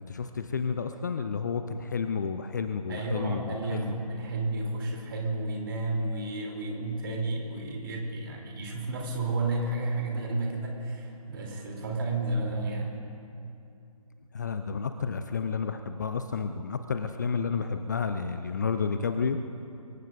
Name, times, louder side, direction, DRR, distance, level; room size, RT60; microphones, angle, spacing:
voice 1, 0.0-3.9 14.3-19.4, left 5 dB, 30° left, 8 dB, 0.5 m, -31 dB
voice 2, 2.9-13.0, right 2 dB, 35° right, 0 dB, 3.2 m, -32 dB
25.5 x 21.5 x 2.6 m, 2.6 s
figure-of-eight pair, 145°, 19 cm